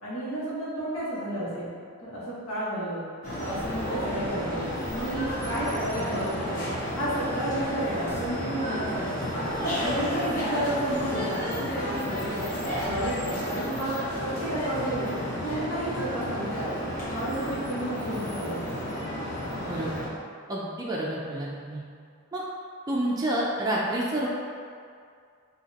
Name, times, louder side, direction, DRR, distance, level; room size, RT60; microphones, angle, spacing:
voice 1, 0.0-1.7 2.0-3.1 3.4-6.6 6.9-9.4 9.8-12.5 12.8-13.9 14.2-16.7 17.1-18.7, right 1 dB, 80° left, -9 dB, 1.4 m, -32 dB
sound 1, 3.2-20.1, equal, 40° left, 1.3 m, -31 dB
voice 2, 19.7-20.1 20.5-21.8 22.3-22.4 22.9-24.3, right 1 dB, 20° right, -5 dB, 0.4 m, -29 dB
4.9 x 2.8 x 2.9 m, 2.2 s
head